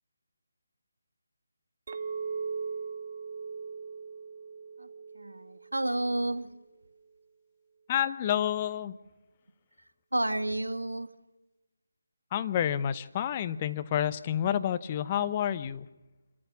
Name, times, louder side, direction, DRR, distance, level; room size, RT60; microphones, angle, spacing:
Chink clink, 1.9-6.4, right 5 dB, 45° right, 1.1 m, -39 dB
voice 1, 5.1-6.5 10.1-11.1, right 1 dB, 85° right, 9 dB, 1.4 m, -31 dB
voice 2, 7.9-9.0 12.3-15.9, left 10 dB, 25° left, 12 dB, 0.8 m, -29 dB
27.0 x 13.5 x 7.1 m, 1.1 s
figure-of-eight pair, 155°, 0 cm